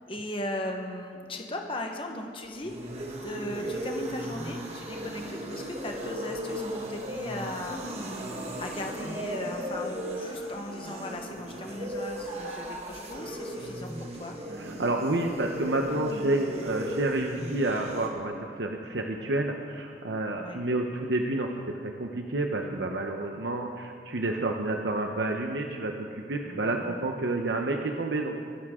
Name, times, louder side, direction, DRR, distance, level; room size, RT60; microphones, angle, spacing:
voice 1, 0.1-2.7 3.2-7.9 8.6-13.9 14.2-14.4 20.4-20.6 26.4-27.0, left 1 dB, 30° left, 2 dB, 1.2 m, -37 dB
sound 1, 2.4-18.1, equal, 35° right, 1.8 m, -36 dB
voice 2, 14.6-28.3, right 2 dB, 80° right, 3 dB, 0.9 m, -29 dB
23.5 x 12.5 x 3.7 m, 2.2 s
head